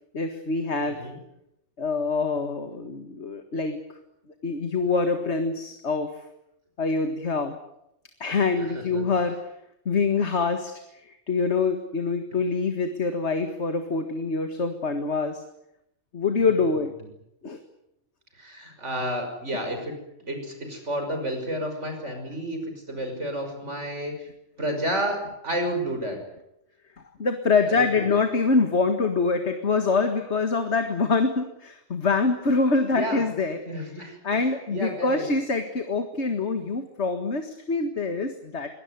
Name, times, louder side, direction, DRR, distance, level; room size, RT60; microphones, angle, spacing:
voice 1, 0.1-1.0 1.8-3.8 4.4-6.1 6.8-7.6 8.2-9.4 9.9-10.7 11.0-15.4 16.1-16.9 17.4-17.6 27.2-33.6 34.2-38.7, left 4 dB, 70° left, 6 dB, 2.1 m, -25 dB
voice 2, 18.4-19.9 20.2-24.3 24.6-26.2 27.7-28.2 32.9-33.2 33.7-34.4 34.7-35.2, right 1 dB, 90° right, 5 dB, 6.2 m, -31 dB
23.0 x 19.0 x 9.5 m, 0.82 s
omnidirectional pair, 1.2 m